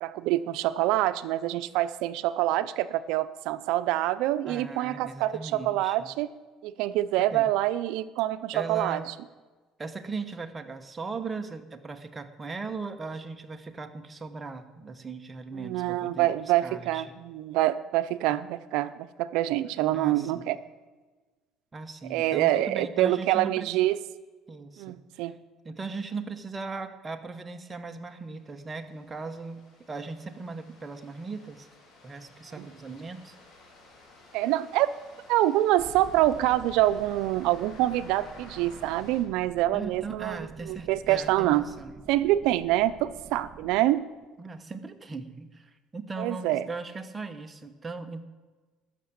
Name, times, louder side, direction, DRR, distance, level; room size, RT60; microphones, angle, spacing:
voice 1, 0.0-6.3 6.6-9.0 15.6-20.6 22.1-24.0 24.8-25.3 32.6-32.7 34.3-34.9 35.3-41.6 42.1-44.0 46.2-46.7, right 14 dB, 80° right, 13 dB, 0.6 m, -26 dB
voice 2, 4.5-6.1 7.2-7.5 8.5-9.1 9.8-16.3 16.6-17.1 19.9-20.5 21.7-23.7 24.5-25.3 25.6-29.6 29.9-31.7 32.0-33.3 39.7-42.0 44.4-48.2, right 4 dB, 20° right, 6 dB, 1.0 m, -38 dB
sound 1, 28.3-39.2, left 2 dB, 55° left, 3.6 m, -53 dB
sound 2, 35.8-43.8, right 5 dB, 35° right, 1.2 m, -49 dB
13.0 x 6.6 x 8.7 m, 1.3 s
cardioid pair, 130°, 0 cm